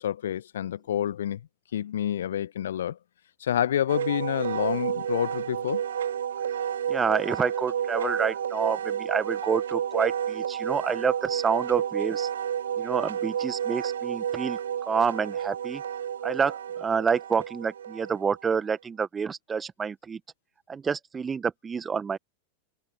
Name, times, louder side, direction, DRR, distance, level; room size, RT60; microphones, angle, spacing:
voice 1, 0.0-1.4 1.7-3.0 3.4-5.8, left 10 dB, 60° left, 1.5 m, -28 dB
Wind instrument woodwind instrument, 3.9-18.6, right 9 dB, 65° right, 2.8 m, -31 dB
voice 2, 6.9-12.3 12.8-14.6 14.9-15.8 16.2-20.2 20.7-22.2, right 6 dB, 15° right, 1.7 m, -28 dB
figure-of-eight pair, 90°, 0 cm